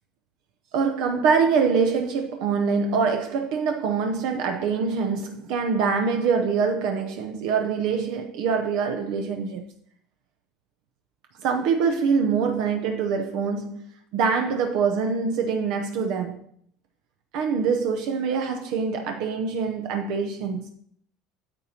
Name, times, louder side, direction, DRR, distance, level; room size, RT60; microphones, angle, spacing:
voice 1, 0.7-9.6 11.4-13.8 14.1-16.4 17.3-20.7, right 5 dB, 55° right, 0.6 m, -24 dB
9.1 x 8.3 x 2.8 m
cardioid pair, 180°, 0 cm